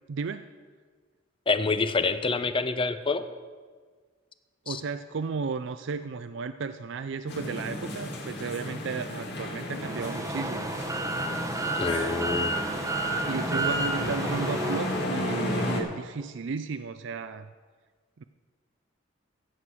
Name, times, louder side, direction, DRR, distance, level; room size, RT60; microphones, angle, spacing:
voice 1, 0.1-0.5 4.7-10.8 13.2-17.5 18.2-18.3, right 5 dB, 65° right, 11 dB, 0.4 m, -34 dB
voice 2, 1.5-3.2 4.7-4.8 11.8-12.6, left 3 dB, 25° left, 11 dB, 0.7 m, -27 dB
sound 1, 7.3-15.8, left 1 dB, 60° left, 2.0 m, -33 dB
sound 2, 9.8-15.0, right 2 dB, 15° right, 0.9 m, -31 dB
14.5 x 8.0 x 6.2 m, 1.5 s
head